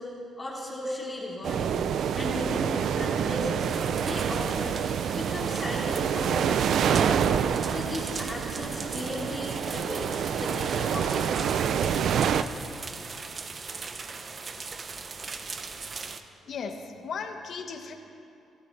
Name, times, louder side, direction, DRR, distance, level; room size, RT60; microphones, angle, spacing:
voice 1, 0.0-1.8 2.1-3.7 4.0-4.8 5.1-7.3 7.7-11.7, left 1 dB, 20° left, -4 dB, 3.0 m, -36 dB
sound 1, 1.4-12.4, right 8 dB, 70° right, 0.5 m, -27 dB
sound 2, 3.6-16.2, right 4 dB, 40° right, 0.8 m, -39 dB
voice 2, 16.5-16.8 17.0-17.9, left 6 dB, 60° left, 4 dB, 1.5 m, -35 dB
25.0 x 13.0 x 3.4 m, 2.7 s
cardioid pair, 90°, 0 cm